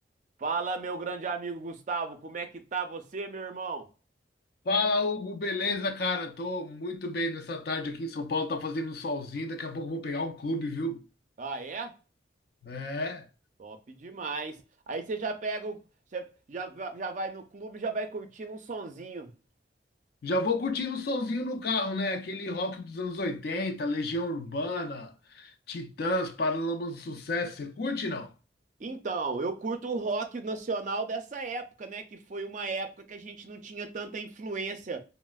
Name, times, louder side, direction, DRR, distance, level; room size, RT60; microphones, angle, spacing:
voice 1, 0.4-3.9 11.4-11.9 13.6-14.6 14.9-15.8 16.1-19.3 28.8-35.0, right 4 dB, 45° right, 0.4 m, -34 dB
voice 2, 4.7-11.0 12.6-13.3 20.2-28.3, left 2 dB, 55° left, 0.4 m, -31 dB
4.0 x 2.0 x 2.2 m
head